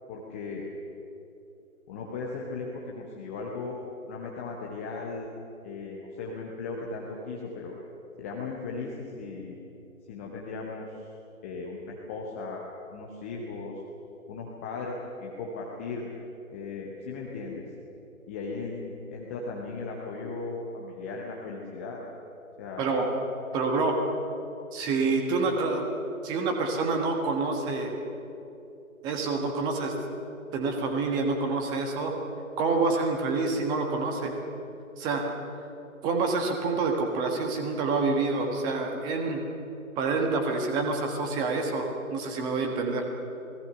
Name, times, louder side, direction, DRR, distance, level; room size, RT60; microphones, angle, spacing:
voice 1, 0.1-0.6 1.9-3.8 4.1-5.3 5.6-7.7 8.2-9.5 10.1-11.2 11.4-12.6 12.9-13.7 14.3-14.9 15.2-16.1 16.5-17.6 18.3-22.0 22.6-22.8, left 4 dB, 10° left, -2 dB, 0.9 m, -37 dB
voice 2, 22.8-23.1 23.5-24.0 24.7-25.8 26.2-27.9 29.0-29.9 30.5-32.1 32.6-34.3 35.0-35.2 36.0-39.4 40.0-43.0, right 3 dB, 10° right, 3 dB, 1.4 m, -27 dB
28.5 x 19.0 x 6.7 m, 2.9 s
figure-of-eight pair, 140°, 42 cm